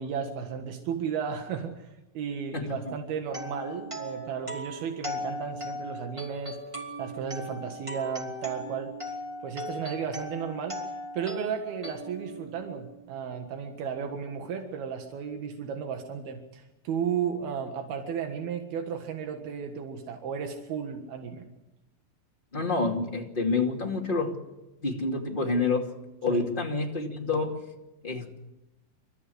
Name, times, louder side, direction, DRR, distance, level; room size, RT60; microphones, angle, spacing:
voice 1, 0.0-1.9 2.2-6.6 7.0-8.9 9.4-10.8 11.1-21.5 26.3-26.4, right 7 dB, 85° right, 5 dB, 3.6 m, -34 dB
voice 2, 2.5-2.9 22.5-24.3 24.8-25.9 26.2-27.6 28.0-28.4, left 3 dB, 15° left, 1 dB, 2.1 m, -28 dB
sound 1, 3.2-13.1, equal, 10° right, 2.2 m, -38 dB
28.5 x 14.0 x 8.0 m, 0.99 s
omnidirectional pair, 4.3 m